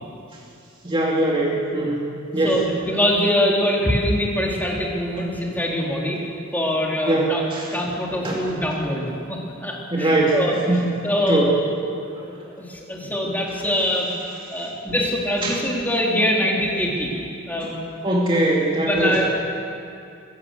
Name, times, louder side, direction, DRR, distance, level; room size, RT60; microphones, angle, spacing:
voice 1, 0.8-2.6 7.0-7.8 8.2-8.4 9.9-10.4 10.7-10.9 11.3-11.5 12.2-12.3 13.0-13.1 13.5-13.6 15.4-15.6 17.6-17.7 18.0-19.3, right 1 dB, 25° right, -3 dB, 2.4 m, -22 dB
voice 2, 2.4-6.2 6.5-7.4 7.7-11.4 12.2-14.1 14.5-17.1 17.5-17.8 18.8-19.3, left 1 dB, 10° left, -2 dB, 3.5 m, -23 dB
22.0 x 15.5 x 8.1 m, 2.5 s
head